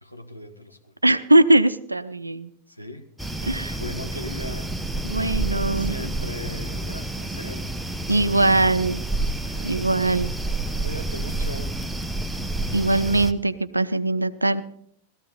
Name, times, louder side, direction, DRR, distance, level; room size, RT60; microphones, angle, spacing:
voice 1, 0.0-0.9 2.7-4.8 5.2-7.8 8.3-8.7 9.4-10.2 10.8-11.8, left 1 dB, 90° left, 1.2 m, -39 dB
voice 2, 1.0-2.5 3.4-3.8 5.0-5.9 8.1-9.0 9.6-10.3 12.7-14.6, right 2 dB, 85° right, 0.5 m, -21 dB
sound 1, 3.2-13.3, right 2 dB, 5° right, 0.8 m, -29 dB
17.5 x 13.5 x 4.0 m
figure-of-eight pair, 90°, 0 cm